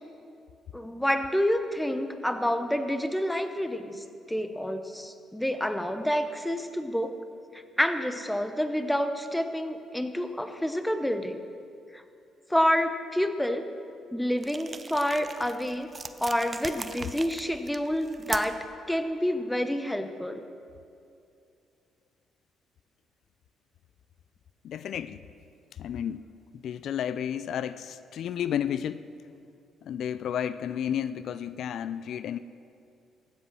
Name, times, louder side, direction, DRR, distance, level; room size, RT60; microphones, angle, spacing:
voice 1, 0.7-7.1 7.5-11.4 11.9-12.0 12.5-13.6 14.1-15.9 16.2-20.4, equal, 5° left, 8 dB, 0.9 m, -28 dB
sound 1, 14.4-18.7, right 4 dB, 30° right, 0.6 m, -40 dB
voice 2, 24.6-25.2 25.8-26.3 26.5-29.1 29.8-32.4, left 9 dB, 70° left, 14 dB, 0.3 m, -32 dB
15.0 x 8.6 x 6.1 m, 2.4 s
cardioid pair, 90°, 0 cm